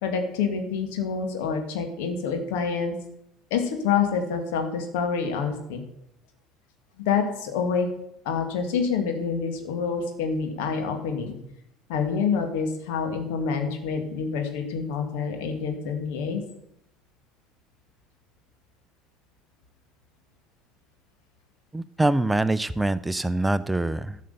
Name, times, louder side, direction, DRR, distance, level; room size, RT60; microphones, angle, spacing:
voice 1, 0.0-2.9 3.5-5.8 7.1-7.9 8.2-11.4 11.9-16.4, left 6 dB, 70° left, 5 dB, 2.2 m, -27 dB
voice 2, 21.7-24.2, right 2 dB, 10° right, 15 dB, 0.5 m, -24 dB
12.5 x 6.6 x 6.9 m, 0.80 s
hypercardioid pair, 70°, 0 cm